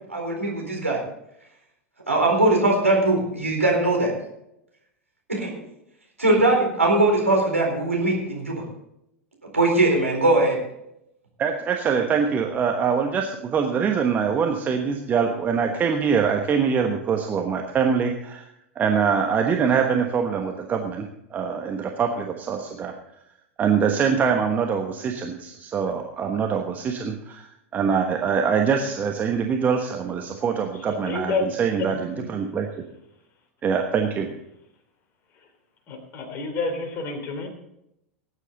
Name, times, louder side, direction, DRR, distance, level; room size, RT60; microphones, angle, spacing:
voice 1, 0.1-1.0 2.1-4.1 5.3-5.5 6.2-8.6 9.5-10.6, right 2 dB, 85° right, 0 dB, 4.1 m, -20 dB
voice 2, 11.4-18.5 18.7-23.0 23.6-32.7 33.6-34.3, right 6 dB, 25° right, 3 dB, 1.2 m, -24 dB
voice 3, 30.9-31.4 31.8-32.3 35.9-37.5, left 3 dB, 35° left, 5 dB, 3.1 m, -29 dB
18.0 x 9.8 x 3.9 m, 0.80 s
figure-of-eight pair, 90°, 7 cm